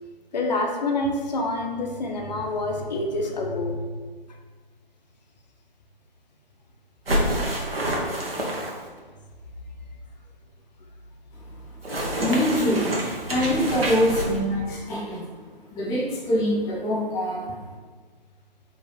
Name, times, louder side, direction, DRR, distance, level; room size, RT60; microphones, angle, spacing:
voice 1, 0.3-3.8, left 2 dB, 45° left, 2 dB, 1.1 m, -27 dB
sound 1, 7.1-9.0 11.8-14.4, right 1 dB, 80° right, 1.9 m, -27 dB
voice 2, 12.1-12.9 13.3-15.3 15.7-17.6, equal, 10° left, -5 dB, 0.9 m, -24 dB
5.5 x 4.6 x 4.7 m, 1.5 s
figure-of-eight pair, 140°, 29 cm